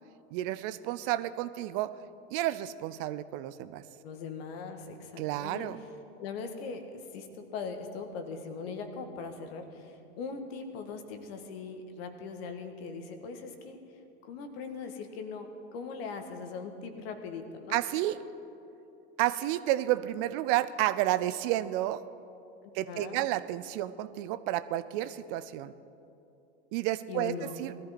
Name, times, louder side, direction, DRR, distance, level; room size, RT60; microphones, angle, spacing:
voice 1, 0.3-1.9 2.3-3.8 5.2-5.8 17.7-18.2 19.2-22.0 22.7-25.7 26.7-27.7, right 14 dB, 50° right, 14 dB, 0.6 m, -31 dB
voice 2, 4.0-5.7 6.2-6.9 7.1-7.3 7.5-9.8 10.2-13.8 14.2-17.8 22.9-23.2 27.1-27.6, left 5 dB, 65° left, 6 dB, 1.7 m, -40 dB
18.5 x 13.5 x 4.3 m, 2.8 s
hypercardioid pair, 95°, 33 cm